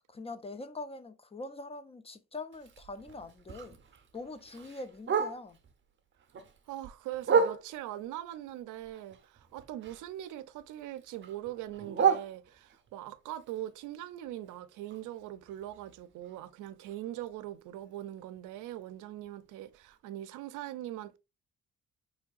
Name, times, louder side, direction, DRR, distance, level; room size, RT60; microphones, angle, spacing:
voice 1, 0.0-3.8 4.1-5.6, left 2 dB, 20° left, 0.3 m, -43 dB
Bark, 2.5-5.7 6.1-8.0 8.5-10.3 10.6-12.9 13.3-17.3 17.6-17.7 18.0-18.4 18.8-18.9 19.3-19.4 19.9-20.0, right 6 dB, 40° right, 0.6 m, -34 dB
voice 2, 6.7-21.2, right 13 dB, 85° right, 0.5 m, -41 dB
3.6 x 3.1 x 2.3 m
cardioid pair, 90°, 30 cm